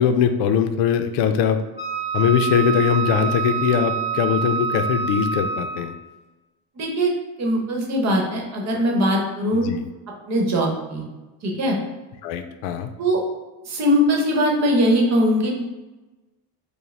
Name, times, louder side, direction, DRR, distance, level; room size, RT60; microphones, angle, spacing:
voice 1, 0.0-1.6 2.1-5.9 9.6-9.8 12.2-12.9, left 8 dB, 85° left, 9 dB, 0.5 m, -21 dB
Wind instrument woodwind instrument, 1.8-6.0, right 6 dB, 20° right, 0.8 m, -26 dB
voice 2, 6.8-7.1 7.4-9.7 10.3-11.0 11.4-11.8 13.0-13.2 13.7-15.5, equal, 40° right, 0 dB, 1.0 m, -20 dB
4.7 x 2.1 x 3.3 m, 1.1 s
cardioid pair, 130°, 40 cm